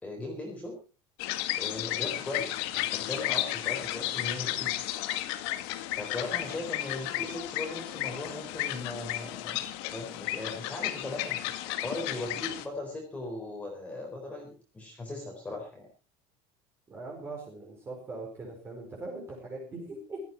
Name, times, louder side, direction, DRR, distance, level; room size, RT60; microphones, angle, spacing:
voice 1, 0.0-0.7 1.6-4.7 6.0-9.6 9.9-11.4 11.8-15.9, left 2 dB, 10° left, 0 dB, 4.0 m, -38 dB
sound 1, 1.2-12.7, left 15 dB, 90° left, 2.0 m, -33 dB
voice 2, 16.9-20.2, right 2 dB, 20° right, -2 dB, 4.9 m, -41 dB
16.5 x 14.5 x 4.6 m, 0.35 s
cardioid pair, 180°, 13 cm